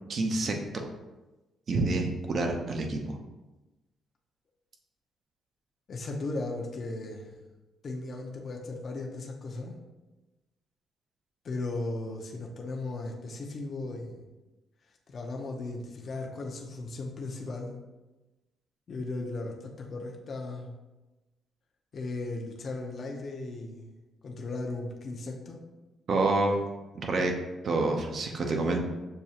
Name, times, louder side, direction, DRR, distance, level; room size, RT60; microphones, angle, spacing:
voice 1, 0.1-0.5 1.7-3.2 26.1-26.6 26.9-27.3 27.6-28.8, right 2 dB, 50° right, 3 dB, 0.7 m, -27 dB
voice 2, 5.9-7.4 7.8-9.7 11.4-14.2 15.1-17.8 18.9-20.7 21.9-23.9 24.2-25.6, left 2 dB, 50° left, 0 dB, 0.7 m, -36 dB
6.5 x 2.3 x 2.8 m, 1.1 s
cardioid pair, 90°, 0 cm